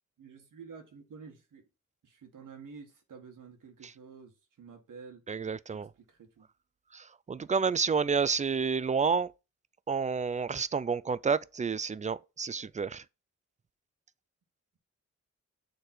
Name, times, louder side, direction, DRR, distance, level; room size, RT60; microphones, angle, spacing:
voice 1, 0.2-1.6 2.0-5.2 5.7-6.5, right 5 dB, 75° right, 1.6 m, -50 dB
voice 2, 5.3-5.9 6.9-9.3 9.9-13.0, right 5 dB, 25° right, 0.3 m, -30 dB
6.6 x 3.3 x 4.3 m
cardioid pair, 60°, 31 cm